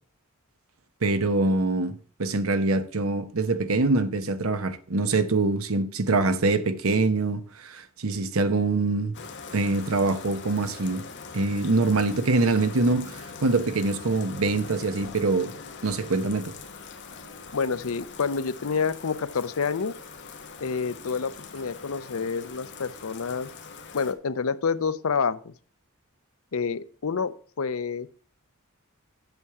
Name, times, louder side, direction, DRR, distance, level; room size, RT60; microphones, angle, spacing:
voice 1, 1.0-9.2 9.5-11.1 11.3-15.5 15.8-16.5, right 3 dB, 70° right, 0.9 m, -24 dB
Bathtub (filling or washing), 9.1-24.1, left 5 dB, 55° left, 1.2 m, -42 dB
voice 2, 17.5-19.9 20.6-23.5 23.9-25.5 26.5-28.1, left 5 dB, 70° left, 0.6 m, -28 dB
8.1 x 7.1 x 4.7 m
head